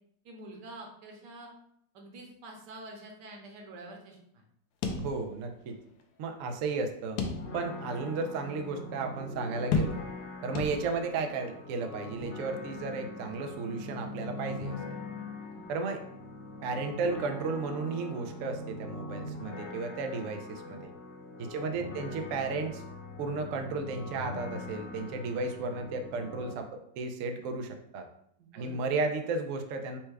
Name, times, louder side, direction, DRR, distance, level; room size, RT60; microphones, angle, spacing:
voice 1, 0.2-1.5 1.9-4.4 15.4-15.7 20.6-20.9 21.5-22.1 28.4-28.8, right 2 dB, 70° right, 1 dB, 1.4 m, -48 dB
sound 1, 4.8-5.7 6.0-6.1 7.2-7.8 8.3-8.4 9.7-10.3 10.6-11.2, left 4 dB, 75° left, 1.1 m, -32 dB
voice 2, 5.0-5.8 6.2-7.2 7.5-10.0 10.4-14.8 15.7-16.0 16.6-20.9 21.4-22.8 23.2-28.1 28.5-30.0, right 4 dB, 90° right, 4 dB, 0.7 m, -34 dB
sound 2, 7.3-26.5, left 2 dB, 45° left, 0.7 m, -42 dB
4.4 x 2.2 x 4.6 m, 0.69 s
omnidirectional pair, 2.0 m